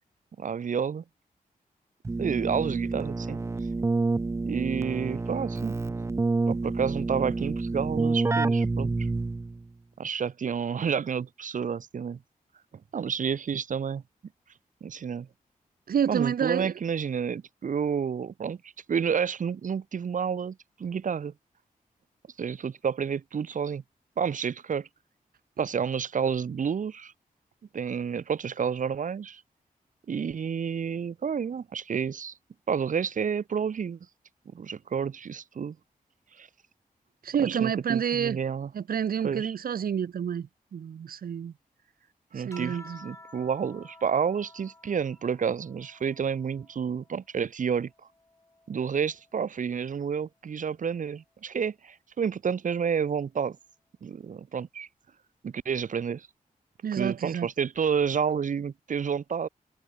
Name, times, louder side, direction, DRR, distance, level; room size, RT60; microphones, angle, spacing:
voice 1, 0.4-1.0 2.2-3.4 4.4-5.8 6.5-9.1 10.0-12.2 12.9-14.0 14.8-15.3 16.1-21.3 22.4-23.8 24.2-24.9 25.6-27.1 27.7-29.4 30.1-32.3 32.7-34.0 34.5-35.8 36.3-36.5 37.4-38.7 39.2-39.5 42.3-47.9 48.7-53.6 54.0-54.9 55.4-56.3 56.9-59.5, right 7 dB, 60° right, 1.0 m, -30 dB
Keyboard (musical), 2.0-9.6, right 3 dB, 20° right, 0.4 m, -28 dB
voice 2, 15.9-16.7 37.2-38.4 38.7-41.5 42.4-43.0 56.8-57.5, right 8 dB, 80° right, 1.2 m, -29 dB
sound 1, 42.5-47.3 47.8-49.5 50.7-51.2, left 2 dB, 20° left, 7.3 m, -52 dB
wide cardioid pair, 120°, 15 cm